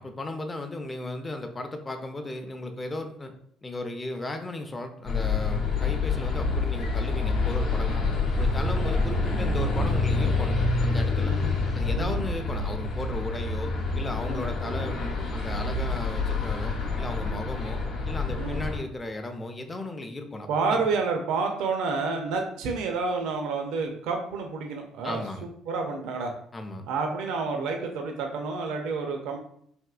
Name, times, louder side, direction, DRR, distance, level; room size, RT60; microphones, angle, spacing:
voice 1, 0.0-3.3 3.6-8.0 8.3-10.6 10.8-11.3 11.7-20.9 25.0-25.5 26.5-26.9, left 2 dB, 20° left, 5 dB, 0.4 m, -35 dB
sound 1, 5.1-18.8, left 3 dB, 75° left, 0.8 m, -27 dB
voice 2, 11.2-11.5 11.9-12.2 14.2-14.4 18.4-18.6 20.5-26.3 26.9-29.4, right 4 dB, 75° right, 3 dB, 0.4 m, -29 dB
3.5 x 2.6 x 2.3 m, 0.66 s
supercardioid pair, 75°, 0 cm